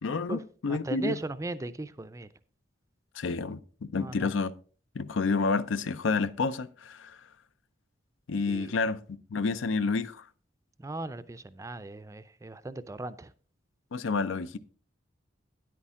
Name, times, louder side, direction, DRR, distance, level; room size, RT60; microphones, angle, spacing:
voice 1, 0.0-1.2 3.1-4.5 4.9-7.2 8.3-10.3 13.9-14.6, left 4 dB, 90° left, 0.5 m, -29 dB
voice 2, 0.7-2.3 3.9-4.3 8.5-8.7 10.8-13.3, right 2 dB, 15° right, 0.4 m, -37 dB
9.7 x 8.5 x 3.6 m
head